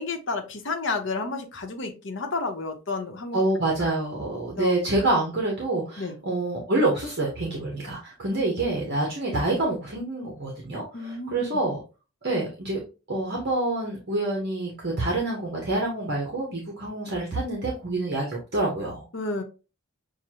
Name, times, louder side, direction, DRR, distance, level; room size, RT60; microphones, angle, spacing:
voice 1, 0.0-3.4 4.6-4.7 6.0-6.2 10.9-11.4 19.1-19.4, left 3 dB, 55° left, 4 dB, 0.9 m, -31 dB
voice 2, 3.3-11.8 12.2-12.8 13.1-19.1, right 2 dB, 50° right, -1 dB, 1.1 m, -27 dB
6.7 x 2.2 x 2.9 m, 0.32 s
head